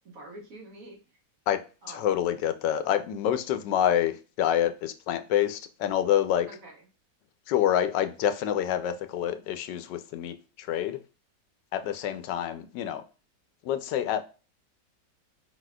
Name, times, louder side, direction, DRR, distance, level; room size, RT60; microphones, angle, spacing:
voice 1, 0.0-1.0 1.8-2.1 6.5-6.8 12.0-12.2, right 1 dB, 50° right, 1.6 m, -46 dB
voice 2, 1.9-6.5 7.5-11.0 11.7-13.0 13.6-14.2, left 10 dB, 80° left, 1.2 m, -27 dB
4.8 x 4.1 x 2.2 m
omnidirectional pair, 1.9 m